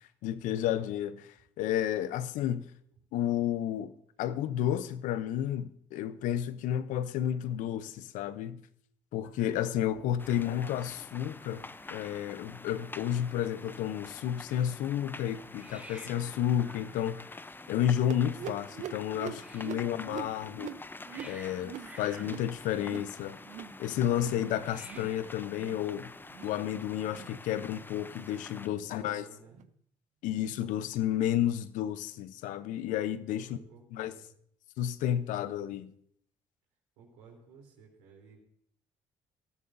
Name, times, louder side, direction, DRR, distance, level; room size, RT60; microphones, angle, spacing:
voice 1, 0.2-1.3 1.6-2.7 3.1-8.6 9.1-17.3 17.7-20.7 21.2-23.4 23.8-26.1 26.4-29.2 30.2-33.6 33.9-34.1 34.8-35.9, left 10 dB, 75° left, 0.7 m, -31 dB
Hiss, 9.2-26.6, right 1 dB, 10° right, 1.6 m, -56 dB
sound 1, 10.2-28.7, left 2 dB, 15° left, 0.6 m, -47 dB
voice 2, 10.2-10.5 19.6-20.2 28.6-29.6 33.3-34.4 37.0-38.4, right 5 dB, 85° right, 3.4 m, -55 dB
sound 2, 18.1-23.1 23.4-23.8 24.1-24.5 24.8-25.1 25.5-25.9 26.3-26.6 27.0-27.3 27.8-28.1 28.7-28.9 29.5-29.7 30.4-30.5 31.3-31.4, right 10 dB, 65° right, 0.7 m, -44 dB
19.5 x 13.0 x 2.6 m
hypercardioid pair, 60°, 13 cm